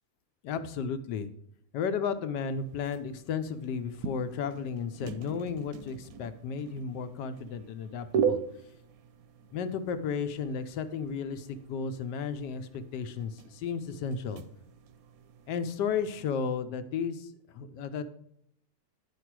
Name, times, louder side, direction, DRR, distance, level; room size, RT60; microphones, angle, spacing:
voice 1, 0.4-1.3 1.7-8.4 9.5-14.4 15.5-18.0, left 6 dB, 80° left, 10 dB, 1.3 m, -33 dB
sound 1, 2.5-16.2, right 7 dB, 70° right, 1.0 m, -39 dB
10.0 x 5.2 x 4.6 m, 0.72 s
omnidirectional pair, 1.8 m